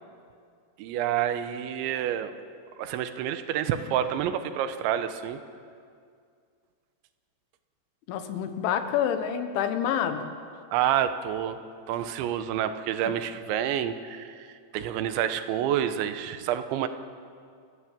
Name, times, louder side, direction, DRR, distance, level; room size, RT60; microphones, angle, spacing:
voice 1, 0.8-2.3 2.8-5.4 10.7-11.6 11.9-16.9, right 10 dB, 85° right, 10 dB, 3.3 m, -28 dB
voice 2, 8.1-10.3, left 9 dB, 90° left, 8 dB, 3.7 m, -27 dB
29.0 x 15.0 x 7.4 m, 2.2 s
omnidirectional pair, 5.2 m